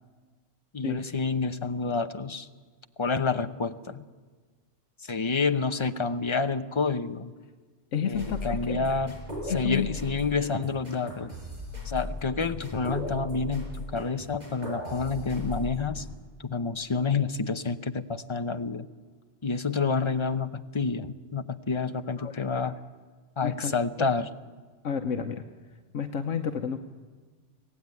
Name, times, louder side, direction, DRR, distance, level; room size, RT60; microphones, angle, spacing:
voice 1, 0.7-2.5 3.0-4.0 5.0-7.3 8.0-9.2 9.4-11.3 11.8-16.1 16.4-18.9 19.4-22.7 23.4-24.3, left 4 dB, 25° left, 10 dB, 0.8 m, -29 dB
voice 2, 7.9-9.0 9.5-9.9 22.2-22.7 23.4-23.7 24.0-24.1 24.8-25.4 25.9-26.8, left 7 dB, 85° left, 5 dB, 1.3 m, -31 dB
sound 1, 8.1-16.0, left 1 dB, 35° right, 6.7 m, -37 dB
25.0 x 17.0 x 9.6 m, 1.5 s
omnidirectional pair, 1.3 m